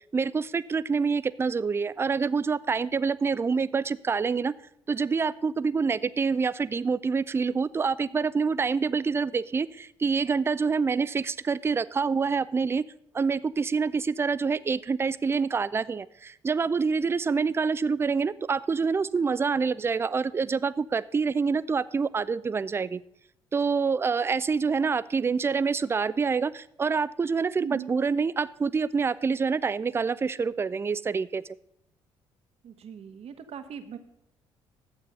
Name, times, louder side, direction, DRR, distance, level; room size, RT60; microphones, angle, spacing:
voice 1, 0.1-4.5 4.9-12.8 13.1-23.0 23.5-31.4, right 5 dB, 15° right, 18 dB, 0.4 m, -26 dB
voice 2, 27.6-27.9 32.6-34.0, right 7 dB, 45° right, 10 dB, 1.0 m, -39 dB
11.5 x 8.2 x 5.2 m, 0.77 s
figure-of-eight pair, 45°, 14 cm